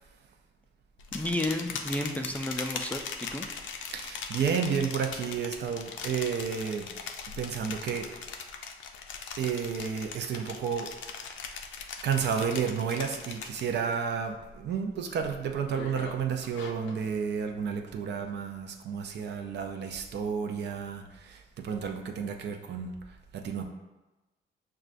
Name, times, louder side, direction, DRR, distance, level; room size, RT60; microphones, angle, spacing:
sound 1, 1.0-13.9 14.3-14.7 15.1-17.0, left 6 dB, 75° left, 0.4 m, -40 dB
voice 1, 1.1-3.5, left 1 dB, 5° left, 2 dB, 0.3 m, -32 dB
voice 2, 3.9-6.9 7.4-8.1 9.4-10.9 12.0-22.9 23.3-23.6, right 6 dB, 60° right, 4 dB, 0.5 m, -31 dB
6.0 x 2.2 x 2.5 m, 1.1 s
cardioid pair, 90°, 20 cm